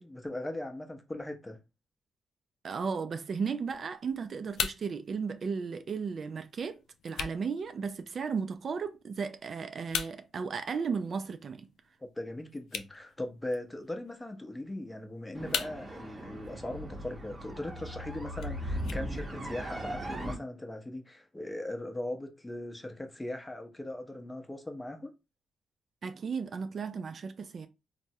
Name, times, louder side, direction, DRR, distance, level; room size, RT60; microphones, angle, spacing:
voice 1, 0.0-1.6 12.0-25.1, left 1 dB, 15° left, 0.6 m, -39 dB
voice 2, 2.6-11.7 26.0-27.7, right 5 dB, 50° right, 0.3 m, -35 dB
sound 1, 3.7-19.7, left 7 dB, 80° left, 0.3 m, -43 dB
sound 2, 15.3-20.3, equal, 20° right, 0.8 m, -38 dB
3.4 x 2.0 x 2.7 m
cardioid pair, 85°, 0 cm